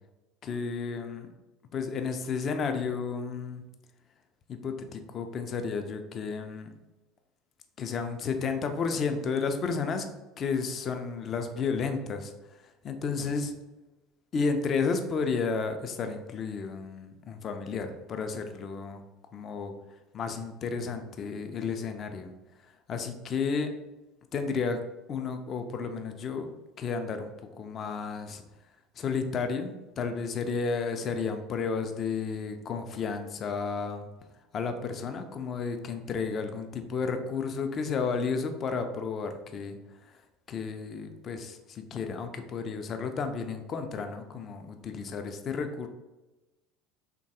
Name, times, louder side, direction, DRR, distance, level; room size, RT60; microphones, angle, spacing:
voice 1, 0.4-1.3 1.7-3.6 4.5-6.7 7.8-10.1 10.4-12.3 12.8-13.5 14.3-19.0 19.3-19.7 20.1-22.3 22.9-23.7 24.3-24.8 25.1-26.5 26.8-28.4 29.0-34.1 34.5-39.8 40.5-45.9, left 5 dB, 40° left, 6 dB, 0.3 m, -32 dB
3.1 x 2.2 x 2.8 m, 1.0 s
figure-of-eight pair, 65°, 0 cm